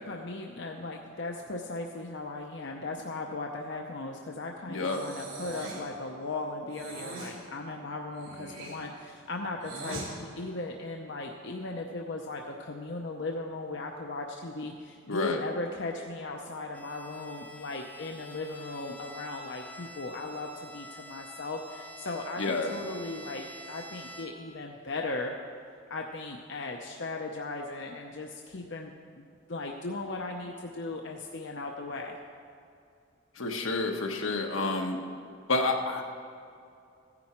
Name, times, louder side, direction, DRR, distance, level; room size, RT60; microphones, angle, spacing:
voice 1, 0.1-25.4 25.9-32.2, left 2 dB, 60° left, 1 dB, 0.7 m, -37 dB
voice 2, 4.7-5.0 15.1-15.4 22.4-22.7 33.3-35.0 35.5-36.0, left 3 dB, 80° left, 2 dB, 1.3 m, -29 dB
Breathing, 4.8-5.9 6.7-7.4 8.1-10.1, right 2 dB, 85° right, 3.5 m, -42 dB
Bowed string instrument, 16.7-24.6, equal, 10° left, 0.8 m, -47 dB
15.5 x 10.0 x 4.4 m, 2.5 s
head